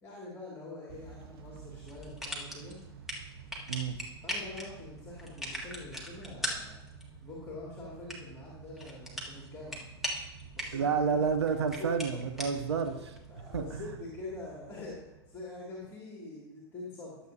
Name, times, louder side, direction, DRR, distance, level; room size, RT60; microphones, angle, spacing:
voice 1, 0.0-2.8 3.7-3.8 4.2-6.8 7.2-9.9 10.5-11.3 11.7-11.9 12.4-12.6 13.3-17.3, left 2 dB, 20° left, -4 dB, 2.6 m, -45 dB
Motor vehicle (road) / Engine starting / Accelerating revving vroom, 0.9-15.9, right 6 dB, 60° right, 1.0 m, -52 dB
sound 1, 1.9-13.8, left 1 dB, ahead, 1.7 m, -42 dB
voice 2, 10.7-13.2 13.5-13.9, right 6 dB, 80° right, 6 dB, 0.7 m, -30 dB
12.5 x 7.8 x 2.8 m, 0.96 s
hypercardioid pair, 105°, 14 cm